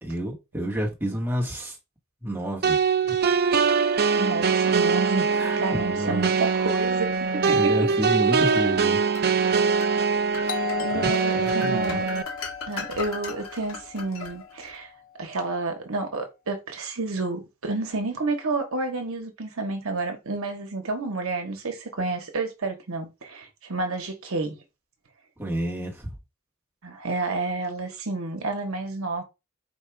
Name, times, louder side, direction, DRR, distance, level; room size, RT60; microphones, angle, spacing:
voice 1, 0.0-1.8 2.2-2.8 3.0-3.2 5.3-6.3 7.4-9.0 10.9-12.0 25.4-26.1, equal, 10° right, 1.1 m, -30 dB
sound 1, 2.6-12.2, right 5 dB, 45° right, 0.4 m, -23 dB
voice 2, 4.2-5.3 5.6-7.7 10.8-12.1 12.7-14.9 15.2-24.6 26.8-29.2, right 3 dB, 65° right, 1.0 m, -30 dB
sound 2, 8.0-9.3 9.8-10.0 10.3-14.8, left 5 dB, 65° left, 1.3 m, -38 dB
Doorbell, 10.5-15.1, left 7 dB, 40° left, 0.4 m, -36 dB
4.4 x 2.4 x 4.4 m
head